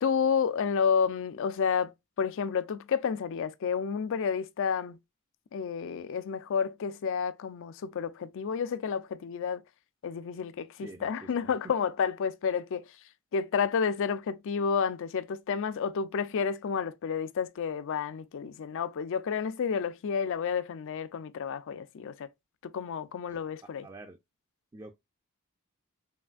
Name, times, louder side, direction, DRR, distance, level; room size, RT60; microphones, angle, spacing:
voice 1, 0.0-1.9 2.2-5.0 5.5-9.6 10.0-12.9 13.3-22.3 22.6-23.9, left 6 dB, 60° left, 0.4 m, -30 dB
voice 2, 10.8-11.5 23.3-23.4 23.8-24.2 24.7-24.9, right 2 dB, 20° right, 0.4 m, -47 dB
5.7 x 2.5 x 2.3 m
head